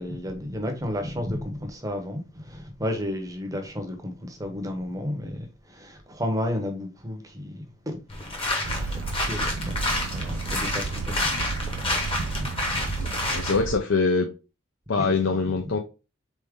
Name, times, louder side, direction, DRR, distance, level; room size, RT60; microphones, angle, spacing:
voice 1, 0.0-8.0 8.3-11.9 12.1-13.5 15.0-15.2, left 1 dB, 15° right, 0.7 m, -33 dB
sound 1, 8.1-13.6, left 2 dB, 25° left, 0.9 m, -29 dB
sound 2, 8.6-13.8, right 5 dB, 80° right, 0.4 m, -32 dB
voice 2, 13.0-14.3 14.9-15.8, left 4 dB, 65° left, 0.5 m, -24 dB
4.0 x 3.5 x 3.5 m
head